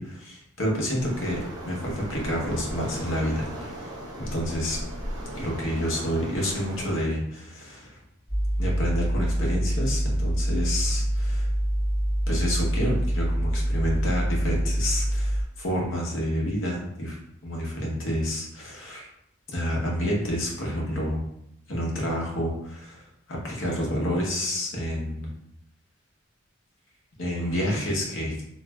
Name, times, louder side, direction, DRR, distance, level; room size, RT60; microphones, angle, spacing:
voice 1, 0.0-4.8 5.3-8.0 8.6-11.5 12.3-17.2 17.4-19.1 19.5-21.2 21.7-25.3 27.2-28.4, equal, 65° left, -2 dB, 0.8 m, -29 dB
Waves surf, 0.9-7.0, equal, 20° right, 0.6 m, -37 dB
sound 1, 8.3-15.4, equal, 10° left, 1.4 m, -25 dB
3.1 x 2.5 x 2.2 m, 0.76 s
head